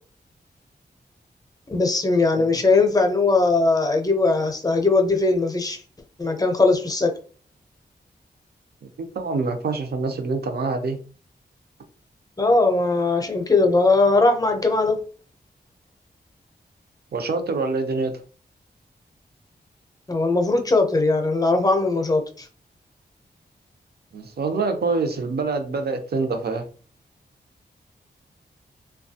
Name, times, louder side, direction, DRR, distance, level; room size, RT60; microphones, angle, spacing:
voice 1, 1.7-5.8 6.2-7.1 12.4-15.0 20.1-22.5, left 3 dB, 20° left, 0.6 m, -20 dB
voice 2, 9.0-11.0 17.1-18.1 24.1-26.6, right 3 dB, 70° right, 0.6 m, -25 dB
3.0 x 2.3 x 2.7 m
wide cardioid pair, 115°, 17 cm